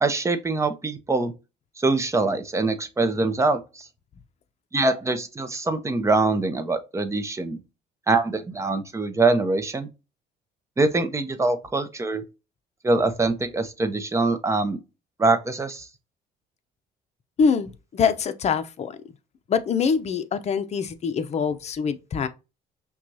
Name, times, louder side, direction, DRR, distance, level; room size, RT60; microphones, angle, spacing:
voice 1, 0.0-1.3 1.8-3.8 4.7-7.6 8.1-9.9 10.8-12.2 12.8-14.8 15.2-15.9, right 3 dB, 15° right, 0.7 m, -23 dB
voice 2, 17.4-19.0 19.5-22.3, left 6 dB, 40° left, 0.7 m, -24 dB
5.7 x 2.4 x 2.7 m
cardioid pair, 110°, 17 cm